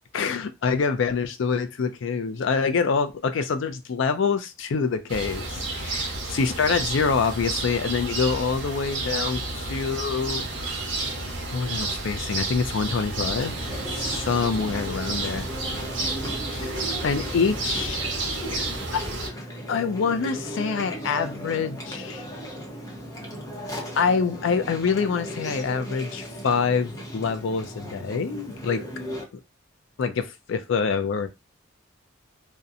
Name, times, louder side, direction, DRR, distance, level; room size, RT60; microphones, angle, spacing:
voice 1, 0.1-10.9 11.5-13.5 13.9-15.5 16.5-16.7 17.0-18.0 18.9-19.0 19.7-22.2 24.0-28.8 30.0-31.3, left 5 dB, 70° left, 0.4 m, -26 dB
sound 1, 5.1-19.3, right 2 dB, 70° right, 0.8 m, -31 dB
Chewing mastication, 13.1-29.2, equal, 15° left, 0.7 m, -36 dB
2.7 x 2.1 x 2.4 m
head